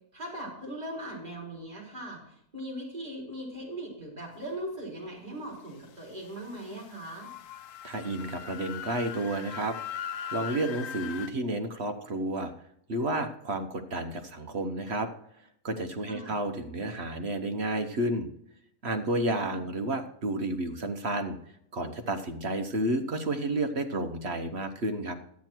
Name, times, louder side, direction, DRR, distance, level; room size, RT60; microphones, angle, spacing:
voice 1, 0.1-7.3 16.1-16.4 19.3-19.7, right 1 dB, 30° right, -3 dB, 4.6 m, -39 dB
sound 1, 6.2-11.3, left 9 dB, 65° left, 1.1 m, -40 dB
voice 2, 7.8-9.8 10.3-12.5 12.9-15.1 15.6-18.3 18.8-21.4 21.7-25.1, right 1 dB, 50° right, 6 dB, 1.2 m, -31 dB
13.0 x 9.6 x 4.5 m, 0.72 s
omnidirectional pair, 1.5 m